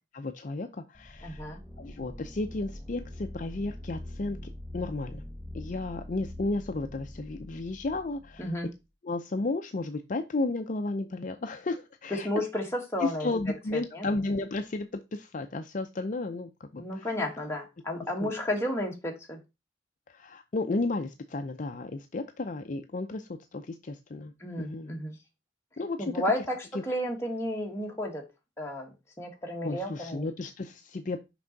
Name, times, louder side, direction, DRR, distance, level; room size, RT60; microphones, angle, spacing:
voice 1, 0.1-5.2 5.5-8.6 9.0-12.3 13.0-17.1 18.2-18.3 20.1-25.0 25.8-26.1 26.7-26.8 29.6-31.2, left 2 dB, 45° left, 7 dB, 0.5 m, -33 dB
sound 1, 0.9-8.7, left 1 dB, ahead, 0.8 m, -43 dB
voice 2, 1.2-1.6 8.4-8.7 12.2-13.3 13.7-14.0 16.8-19.4 24.4-25.2 26.0-28.2 28.6-30.3, left 1 dB, 15° left, 0 dB, 1.6 m, -32 dB
6.0 x 5.4 x 3.9 m, 0.25 s
head